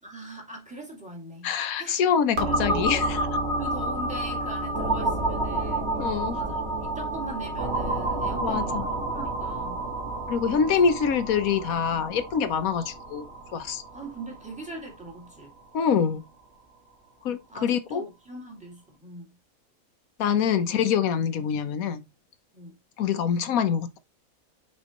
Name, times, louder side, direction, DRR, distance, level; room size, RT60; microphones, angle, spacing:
voice 1, 0.0-2.0 2.4-3.1 3.6-9.8 10.5-10.8 11.4-11.6 13.9-15.5 17.5-19.4 20.5-20.7 22.5-22.8, right 2 dB, 5° right, 2.2 m, -41 dB
voice 2, 1.4-3.2 6.0-6.4 8.4-8.8 10.3-13.3 13.5-13.8 15.7-16.2 17.2-18.1 20.2-22.0 23.0-24.0, left 7 dB, 80° left, 1.3 m, -25 dB
sound 1, 2.4-15.9, right 2 dB, 50° right, 1.9 m, -30 dB
6.3 x 5.3 x 3.0 m
omnidirectional pair, 1.4 m